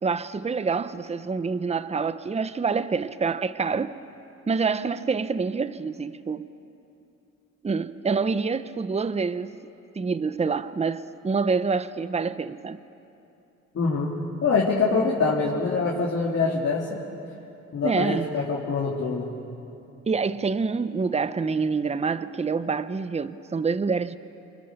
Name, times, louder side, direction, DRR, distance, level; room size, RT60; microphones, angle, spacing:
voice 1, 0.0-4.0 4.5-6.5 7.6-9.6 9.9-12.8 17.8-18.3 20.1-24.2, right 5 dB, 20° right, 0.8 m, -26 dB
voice 2, 13.7-14.1 14.4-17.0 17.7-19.3, left 4 dB, 55° left, 3.6 m, -24 dB
27.0 x 27.0 x 7.0 m
cardioid pair, 90°, 30 cm